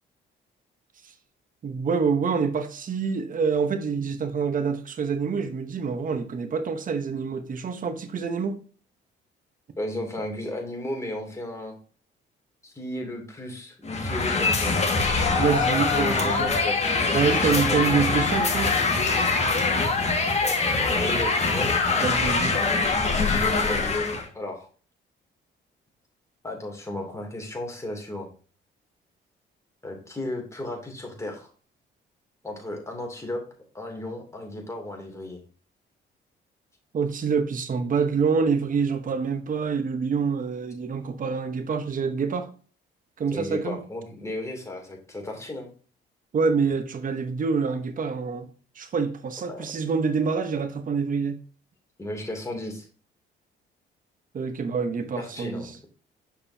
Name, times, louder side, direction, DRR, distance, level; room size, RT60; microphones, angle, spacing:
voice 1, 1.6-8.6 15.4-16.5 17.1-18.7 22.0-22.5 36.9-42.5 43.2-43.8 46.3-48.5 48.8-51.4 54.3-55.7, right 5 dB, 45° right, 0.9 m, -26 dB
voice 2, 9.8-11.7 12.6-14.7 15.9-16.8 17.1-18.1 20.4-21.8 23.7-23.9 24.3-24.7 26.4-28.3 29.8-31.5 32.4-33.4 33.7-35.4 43.3-45.7 49.5-49.7 52.0-52.9 55.2-55.9, left 1 dB, 15° left, 2.6 m, -34 dB
sound 1, 13.9-24.3, left 3 dB, 35° left, 1.8 m, -23 dB
6.6 x 5.6 x 2.7 m
cardioid pair, 90°, 20 cm